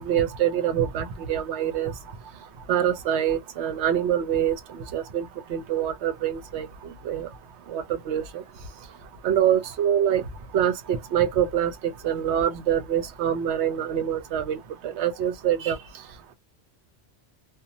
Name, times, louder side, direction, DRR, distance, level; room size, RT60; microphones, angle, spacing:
voice 1, 0.0-1.9 2.7-4.6 4.9-6.7 7.0-7.3 7.7-8.4 9.2-10.2 10.5-14.6 14.8-15.8, right 9 dB, 70° right, 0.9 m, -25 dB
2.7 x 2.1 x 2.6 m
omnidirectional pair, 1.2 m